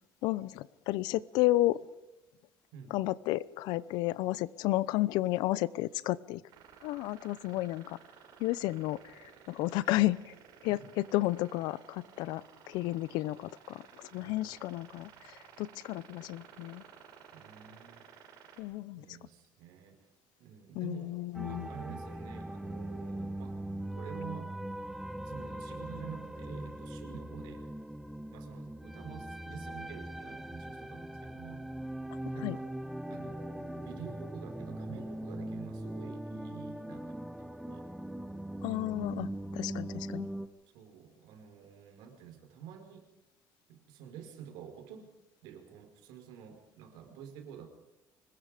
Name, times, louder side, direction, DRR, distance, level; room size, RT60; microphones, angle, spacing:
voice 1, 0.2-1.8 2.9-6.4 6.8-8.0 8.4-9.1 9.5-10.3 10.6-16.8 18.6-19.0 20.7-21.7 32.4-32.6 38.6-39.3 39.5-40.3, left 17 dB, 80° left, 20 dB, 0.8 m, -32 dB
voice 2, 2.7-3.0 7.5-7.7 10.7-10.9 14.2-14.5 17.3-18.1 18.9-20.1 20.4-21.2 21.4-23.6 23.9-24.5 25.2-27.6 28.3-31.6 32.3-32.7 33.1-37.9 40.7-43.1 43.7-45.1 45.4-47.7, right 8 dB, 80° right, 5 dB, 5.0 m, -49 dB
sound 1, 6.5-18.6, right 7 dB, 65° right, 6.7 m, -56 dB
sound 2, 21.3-40.5, right 1 dB, 5° right, 1.1 m, -40 dB
25.0 x 21.0 x 5.1 m, 0.98 s
cardioid pair, 145°, 7 cm